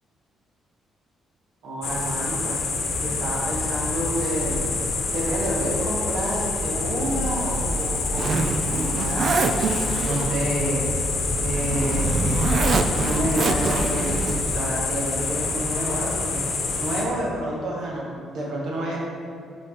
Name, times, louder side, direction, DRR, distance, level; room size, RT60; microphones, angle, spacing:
voice 1, 1.6-2.6 3.0-4.6 5.1-9.4 10.0-10.8 11.4-12.7 13.0-16.4 16.8-19.0, right 1 dB, 75° right, -4 dB, 1.5 m, -29 dB
sound 1, 1.8-17.0, left 3 dB, 65° left, 0.9 m, -26 dB
Zipper (clothing), 7.2-14.6, right 3 dB, 55° right, 0.4 m, -27 dB
5.0 x 4.7 x 4.2 m, 2.3 s
cardioid pair, 90°, 0 cm